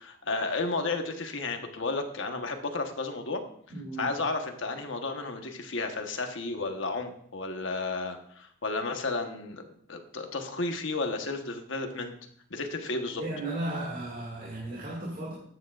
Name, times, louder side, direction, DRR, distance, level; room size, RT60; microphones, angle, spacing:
voice 1, 0.0-3.4 4.0-9.6 9.9-12.1 12.5-13.2, left 3 dB, 70° left, 5 dB, 1.2 m, -32 dB
voice 2, 3.7-4.1 13.2-15.3, right 2 dB, 45° right, -4 dB, 2.2 m, -35 dB
13.5 x 9.0 x 2.5 m, 0.64 s
head